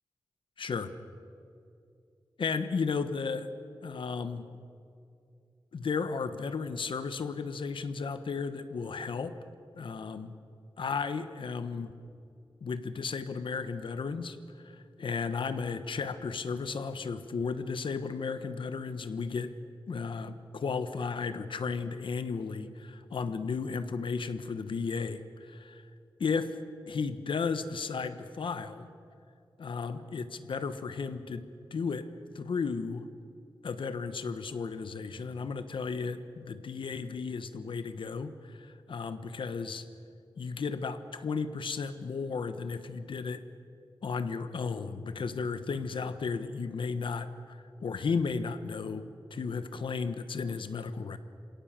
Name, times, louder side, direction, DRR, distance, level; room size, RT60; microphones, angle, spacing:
voice 1, 0.6-0.9 2.4-3.5 3.8-4.5 5.7-9.3 9.7-10.3 10.8-11.9 12.6-14.4 14.6-19.5 19.9-25.8 26.2-26.6 26.9-28.9 29.6-31.4 31.7-32.1 32.3-33.0 33.6-39.9 40.4-43.4 44.0-49.1 49.3-51.2, left 5 dB, 80° left, 11 dB, 1.2 m, -34 dB
26.5 x 17.5 x 7.6 m, 2.5 s
wide cardioid pair, 110°, 8 cm